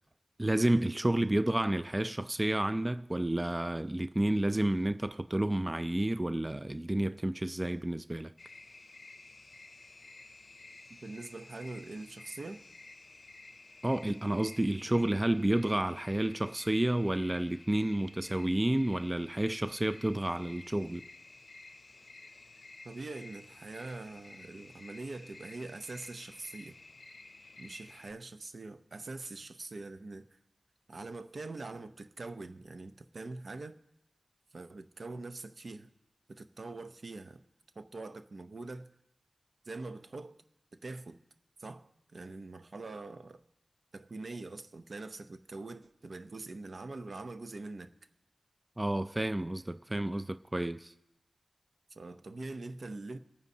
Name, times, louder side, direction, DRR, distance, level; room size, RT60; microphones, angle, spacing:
voice 1, 0.4-8.3 13.8-21.0 48.8-50.9, right 1 dB, 20° right, 0.4 m, -30 dB
sound 1, 8.4-28.1, left 3 dB, 55° left, 0.6 m, -53 dB
voice 2, 10.9-12.7 22.8-26.8 27.6-30.4 30.9-33.8 34.5-35.9 36.3-37.4 37.8-38.9 39.6-40.4 40.7-41.2 41.6-43.4 43.9-47.9 51.9-53.2, right 3 dB, 65° right, 0.7 m, -43 dB
25.5 x 9.4 x 2.8 m
cardioid pair, 55°, 0 cm